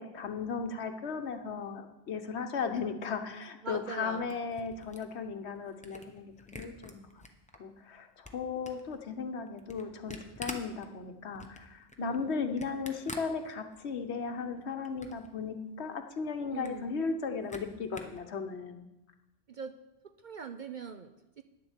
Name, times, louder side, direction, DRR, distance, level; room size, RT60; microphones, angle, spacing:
voice 1, 0.0-7.1 7.6-18.9, left 5 dB, 65° left, 7 dB, 1.1 m, -36 dB
voice 2, 3.6-4.4 12.0-12.4 16.5-16.9 19.5-19.8 20.0-21.4, right 5 dB, 55° right, 8 dB, 0.6 m, -42 dB
Camera, 3.9-7.6 8.0-14.0 14.4-15.3 15.7-15.8 16.0-16.1 16.4-18.2, left 1 dB, 5° left, 0.8 m, -48 dB
10.0 x 7.6 x 7.2 m, 0.99 s
omnidirectional pair, 1.2 m